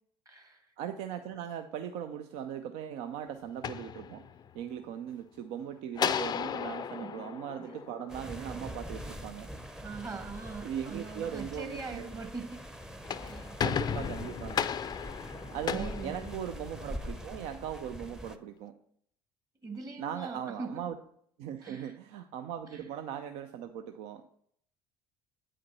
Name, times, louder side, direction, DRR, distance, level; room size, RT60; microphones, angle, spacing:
voice 1, 0.2-0.7 7.0-7.2 7.6-7.7 9.8-12.6 13.2-13.6 15.7-16.3 19.6-20.8 21.6-22.0 22.7-22.8, right 4 dB, 30° right, 6 dB, 1.4 m, -42 dB
voice 2, 0.8-4.2 4.5-9.5 10.6-12.0 13.6-14.7 15.5-18.7 20.0-21.0 21.4-24.2, right 9 dB, 60° right, 8 dB, 0.5 m, -39 dB
sound 1, 3.4-4.6 6.0-8.4 12.8-16.9, left 8 dB, 35° left, 0.4 m, -35 dB
sound 2, 8.1-18.4, equal, 5° right, 0.7 m, -43 dB
8.6 x 5.1 x 4.0 m, 0.67 s
hypercardioid pair, 60°, 12 cm